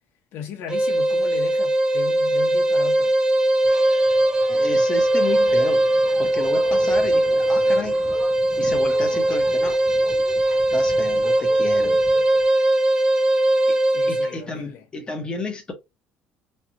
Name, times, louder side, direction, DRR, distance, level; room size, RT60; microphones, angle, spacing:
voice 1, 0.3-3.2 13.9-14.9, left 7 dB, 60° left, 1.0 m, -36 dB
sound 1, 0.7-14.4, right 1 dB, 15° right, 0.5 m, -20 dB
sound 2, 3.6-12.4, equal, ahead, 1.2 m, -39 dB
voice 2, 4.5-5.9 6.2-8.0 8.6-9.8 10.7-12.0 13.7-13.8 14.1-15.7, left 3 dB, 20° left, 1.1 m, -31 dB
3.2 x 2.4 x 2.7 m
cardioid pair, 140°, 4 cm